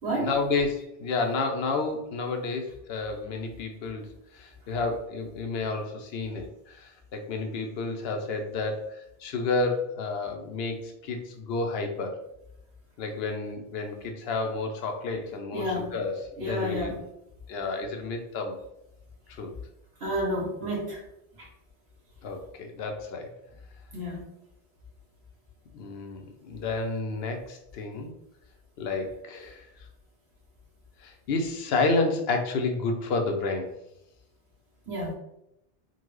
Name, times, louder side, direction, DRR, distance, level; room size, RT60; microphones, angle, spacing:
voice 1, 0.1-4.1 4.3-12.2 13.0-17.0 17.5-18.6 19.3-19.5 22.2-23.3 25.7-28.1 28.8-29.7 31.0-33.8, left 3 dB, 75° left, 4 dB, 0.8 m, -30 dB
voice 2, 15.5-15.9 16.4-16.9 20.0-21.0 21.4-21.5 23.9-24.2 34.8-35.1, equal, 75° right, -4 dB, 1.6 m, -30 dB
3.7 x 2.2 x 3.1 m, 0.83 s
omnidirectional pair, 1.1 m